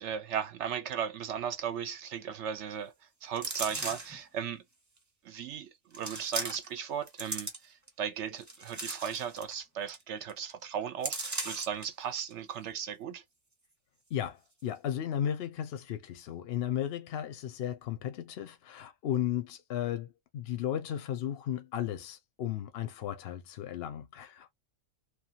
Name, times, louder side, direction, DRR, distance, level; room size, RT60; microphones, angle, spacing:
voice 1, 0.0-4.6 5.2-13.2, right 8 dB, 70° right, 0.8 m, -36 dB
sound 1, 3.4-4.2 5.0-5.1 5.9-6.8 7.1-7.9 8.4-9.6 9.9-10.0 10.3-10.5 11.0-11.9 12.3-12.4, right 2 dB, 20° right, 0.6 m, -37 dB
voice 2, 14.1-24.5, left 10 dB, 60° left, 0.7 m, -35 dB
3.0 x 2.3 x 2.8 m
omnidirectional pair, 1.3 m